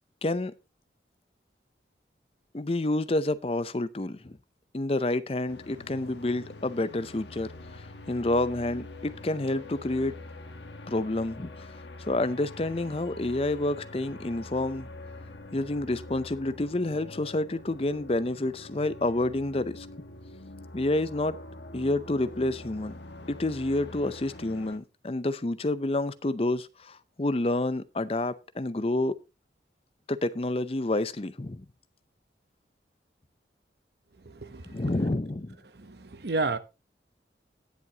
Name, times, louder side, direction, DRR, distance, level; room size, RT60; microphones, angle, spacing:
voice 1, 2.5-4.4 4.7-10.1 10.9-11.7 12.0-14.9 15.5-19.9 20.7-21.4 21.7-22.9 23.3-29.1 30.1-31.6 34.7-35.6, left 2 dB, 30° left, 0.6 m, -29 dB
sound 1, 5.5-24.8, left 2 dB, 75° left, 1.3 m, -45 dB
voice 2, 34.3-34.8 35.8-36.6, right 3 dB, 65° right, 0.9 m, -31 dB
18.0 x 7.6 x 2.9 m
head